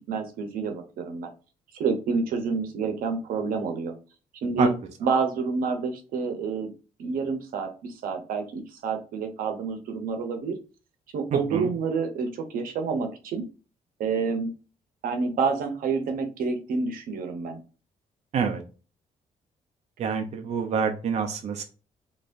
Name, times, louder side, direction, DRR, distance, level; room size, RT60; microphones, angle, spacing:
voice 1, 0.1-1.3 1.7-3.9 4.4-4.7 5.0-6.7 7.0-10.5 11.1-13.4 14.0-14.5 15.0-17.6, right 5 dB, 90° right, 6 dB, 0.8 m, -28 dB
voice 2, 11.3-11.7 18.3-18.6 20.0-21.6, right 6 dB, 50° right, 3 dB, 0.6 m, -27 dB
4.0 x 3.1 x 2.6 m, 0.34 s
cardioid pair, 160°, 14 cm